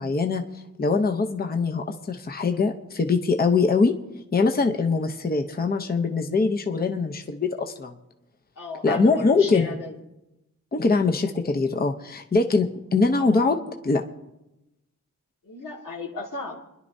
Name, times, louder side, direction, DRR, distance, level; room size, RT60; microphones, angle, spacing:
voice 1, 0.0-3.9 4.3-8.0 8.8-9.7 10.7-14.0, left 4 dB, 30° left, 4 dB, 0.8 m, -23 dB
voice 2, 8.6-10.0 15.4-16.6, left 3 dB, 85° left, 0 dB, 2.2 m, -35 dB
29.5 x 11.0 x 2.7 m, 0.94 s
wide cardioid pair, 140°, 31 cm